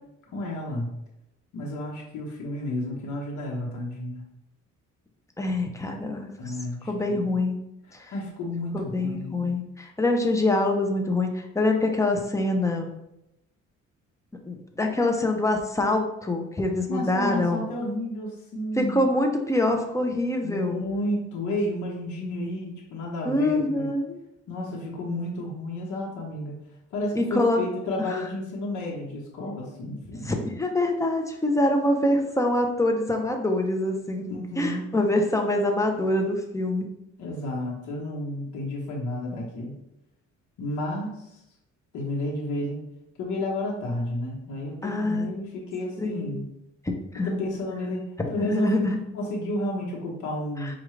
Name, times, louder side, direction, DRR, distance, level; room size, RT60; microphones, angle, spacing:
voice 1, 0.3-0.9 1.5-4.2 6.4-7.3 8.1-9.5 16.9-19.1 20.4-23.9 24.5-26.5 26.9-30.3 34.3-34.9 37.2-39.7 40.6-41.2 41.9-42.8 43.2-46.4 47.2-48.9 49.1-50.7, left 1 dB, 75° left, -3 dB, 1.1 m, -31 dB
voice 2, 5.4-6.4 6.9-7.6 7.9-8.1 8.7-12.9 14.5-17.7 18.8-20.8 23.2-24.2 27.2-27.6 28.1-28.2 30.2-36.9 44.8-45.3 46.0-46.4 46.9-47.4 48.2-49.0 50.6-50.8, left 2 dB, 10° left, 3 dB, 0.6 m, -25 dB
4.6 x 2.5 x 3.2 m, 0.85 s
cardioid pair, 90°, 30 cm